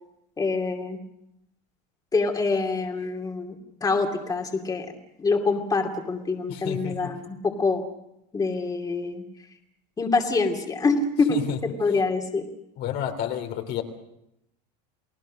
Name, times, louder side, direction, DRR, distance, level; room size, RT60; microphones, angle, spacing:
voice 1, 0.4-1.0 2.1-3.6 3.8-4.9 5.2-7.9 8.3-9.2 10.0-12.4, left 3 dB, 15° left, 2 dB, 2.8 m, -25 dB
voice 2, 6.5-7.0 11.3-11.6 12.8-13.8, left 9 dB, 50° left, 5 dB, 3.2 m, -30 dB
30.0 x 19.0 x 6.5 m, 0.81 s
supercardioid pair, 130°, 21 cm